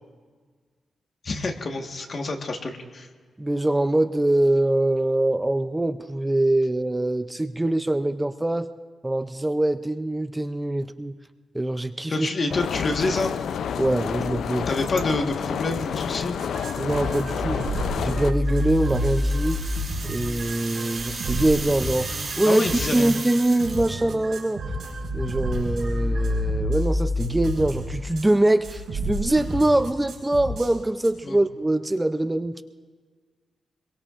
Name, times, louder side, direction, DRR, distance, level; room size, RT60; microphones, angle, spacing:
voice 1, 1.2-3.1 12.1-13.3 14.7-16.3 22.4-23.1 31.2-31.4, left 2 dB, 40° left, 4 dB, 1.4 m, -27 dB
voice 2, 3.4-8.7 9.0-11.2 11.5-12.3 13.8-14.7 16.8-17.7 18.0-19.6 20.0-24.6 25.1-32.6, right 1 dB, 10° right, 10 dB, 0.4 m, -23 dB
sound 1, 12.5-18.3, left 8 dB, 80° left, 0.4 m, -29 dB
sound 2, 16.4-28.3 28.6-30.7 31.0-31.1, equal, 80° right, 4.5 m, -29 dB
sound 3, 18.4-24.0, right 4 dB, 40° right, 3.7 m, -35 dB
26.0 x 22.5 x 2.5 m, 1.5 s
wide cardioid pair, 140°, 0 cm